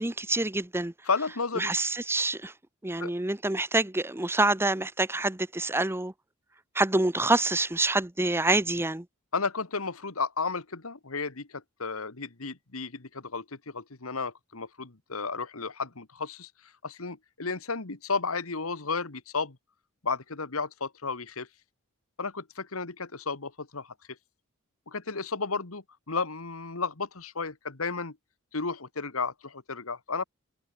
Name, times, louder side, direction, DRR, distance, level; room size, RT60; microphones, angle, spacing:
voice 1, 0.0-0.9 1.6-2.5 2.8-6.1 6.7-9.1, right 2 dB, 10° right, 1.0 m, -26 dB
voice 2, 1.1-1.7 3.0-3.1 9.3-16.5 16.8-19.6 20.0-21.5 22.2-23.9 24.9-28.2 28.5-30.2, left 4 dB, 90° left, 1.8 m, -33 dB
head